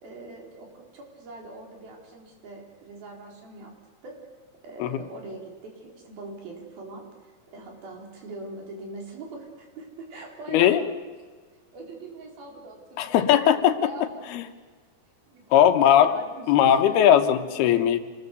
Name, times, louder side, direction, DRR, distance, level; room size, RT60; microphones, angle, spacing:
voice 1, 0.0-3.7 4.0-4.2 4.6-10.7 11.7-14.0 15.3-15.7 16.0-17.4, right 3 dB, 70° right, 1 dB, 6.0 m, -42 dB
voice 2, 13.0-13.9 14.3-14.4 15.5-16.2 16.5-18.0, left 10 dB, 90° left, 8 dB, 3.2 m, -19 dB
27.5 x 20.5 x 6.8 m, 1.5 s
omnidirectional pair, 4.4 m